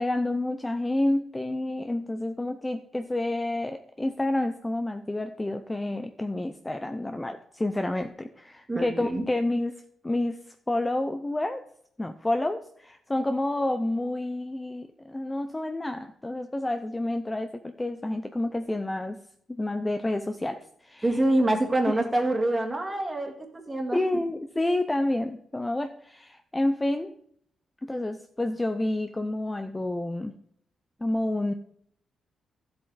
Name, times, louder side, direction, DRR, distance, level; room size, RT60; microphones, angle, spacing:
voice 1, 0.0-10.4 10.7-11.6 12.0-19.2 19.5-21.1 21.9-22.0 23.9-27.1 27.8-30.3 31.0-31.5, left 1 dB, 10° left, 7 dB, 0.5 m, -29 dB
voice 2, 8.7-9.2 21.0-24.2, right 1 dB, 15° right, 2 dB, 1.7 m, -26 dB
13.0 x 7.7 x 4.0 m, 0.66 s
wide cardioid pair, 160°, 0 cm